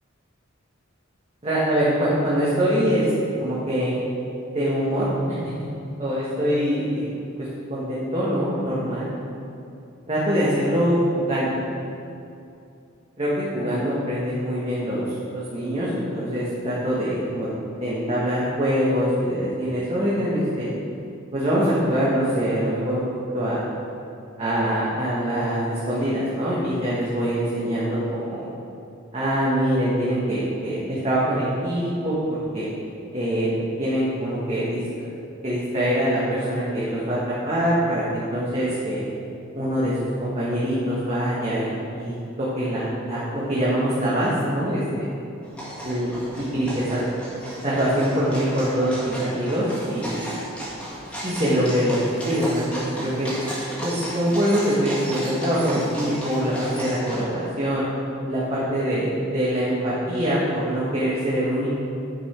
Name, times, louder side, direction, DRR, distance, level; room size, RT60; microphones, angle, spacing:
voice 1, 1.4-3.9 4.5-5.4 6.0-9.1 10.1-11.5 13.2-15.0 15.3-17.5 17.8-20.7 21.3-23.0 23.3-23.7 24.4-28.5 29.1-32.7 33.1-35.1 35.4-37.2 37.5-39.0 39.5-45.0 45.8-47.0 47.6-50.4 51.2-52.0 52.2-53.4 53.8-57.9 58.3-61.7, equal, 30° right, -8 dB, 1.3 m, -24 dB
sound 1, 45.4-57.2, equal, 5° left, 1.8 m, -34 dB
9.6 x 5.5 x 4.4 m, 2.6 s
head